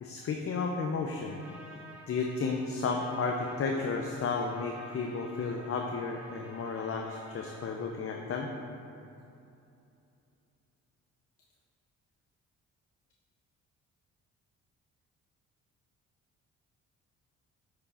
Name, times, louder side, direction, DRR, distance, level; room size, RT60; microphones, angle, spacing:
voice 1, 0.0-1.4 2.1-8.5, left 4 dB, 45° left, 1 dB, 0.7 m, -33 dB
Trumpet, 1.3-7.8, right 1 dB, 5° right, 1.5 m, -51 dB
8.4 x 4.9 x 4.3 m, 2.7 s
cardioid pair, 90°, 30 cm